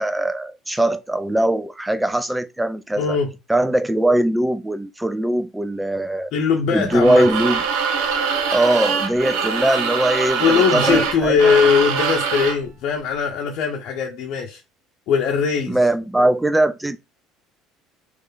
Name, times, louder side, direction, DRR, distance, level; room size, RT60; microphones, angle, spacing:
voice 1, 0.0-3.2 3.5-6.3 6.7-7.6 8.5-11.5 15.7-17.0, right 1 dB, 5° right, 0.5 m, -20 dB
voice 2, 3.0-3.3 6.3-7.3 10.4-14.6 15.1-15.8, left 6 dB, 60° left, 0.8 m, -20 dB
sound 1, 6.9-12.7, right 6 dB, 80° right, 1.0 m, -23 dB
3.3 x 3.1 x 3.9 m
cardioid pair, 120°, 0 cm